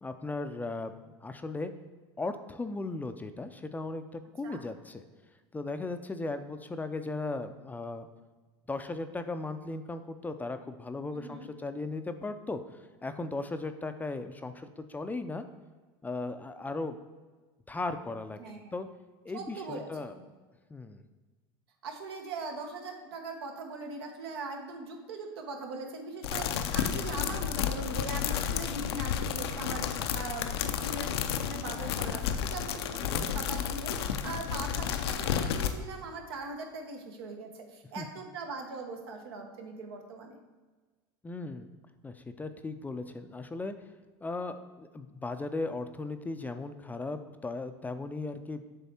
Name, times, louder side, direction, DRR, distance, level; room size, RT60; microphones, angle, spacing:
voice 1, 0.0-1.7 2.2-5.0 5.5-8.1 8.7-12.6 13.0-15.5 16.0-17.0 17.7-18.4 18.7-18.9 19.2-20.1 20.7-21.0 33.0-33.3 38.0-38.1 41.2-41.7 42.0-43.7 44.2-48.6, left 3 dB, 15° left, 9 dB, 0.4 m, -37 dB
voice 2, 11.1-11.5 18.4-18.8 19.3-20.2 21.8-40.4, right 3 dB, 80° right, 3 dB, 1.1 m, -41 dB
sound 1, 26.2-35.7, left 9 dB, 85° left, 0.5 m, -32 dB
7.2 x 3.4 x 4.3 m, 1.3 s
hypercardioid pair, 100°, 13 cm